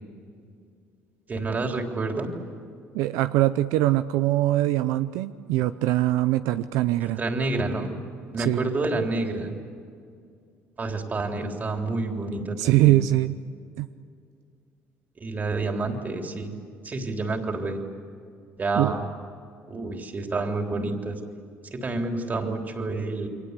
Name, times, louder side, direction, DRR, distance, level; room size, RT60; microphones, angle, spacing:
voice 1, 1.3-2.3 7.0-7.9 8.3-9.5 10.8-13.0 15.2-16.5 16.8-17.8 18.6-19.1 19.7-21.2 21.7-23.3, right 3 dB, 35° right, 3 dB, 3.6 m, -28 dB
voice 2, 2.9-7.2 8.4-8.7 12.6-13.4 13.8-13.9 18.8-19.0, right 15 dB, 85° right, 11 dB, 0.6 m, -22 dB
29.5 x 23.5 x 8.3 m, 2.3 s
cardioid pair, 95°, 5 cm